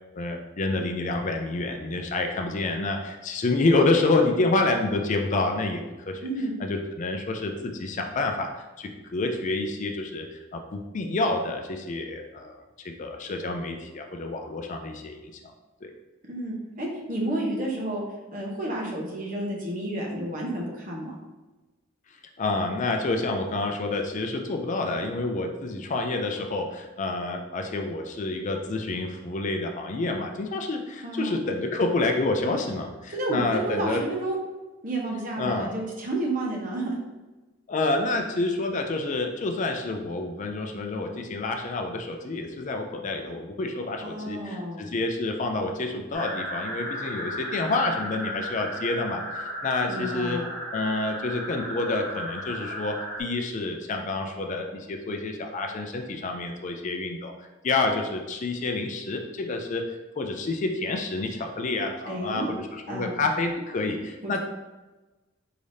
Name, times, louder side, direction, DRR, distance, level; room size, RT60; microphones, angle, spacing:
voice 1, 0.2-6.2 6.6-15.3 15.8-15.9 22.4-34.0 35.4-35.7 37.7-50.4 50.7-59.8 60.2-64.4, left 2 dB, 40° left, 4 dB, 0.4 m, -28 dB
voice 2, 6.2-6.6 16.3-18.0 18.3-21.1 31.0-31.4 33.1-34.4 34.8-37.0 44.0-44.8 49.9-50.4 62.1-62.5 62.9-63.2 64.2-64.4, right 1 dB, 45° right, -2 dB, 1.0 m, -30 dB
sound 1, 46.1-53.2, equal, 15° left, 1.3 m, -35 dB
4.7 x 3.4 x 2.7 m, 1.1 s
head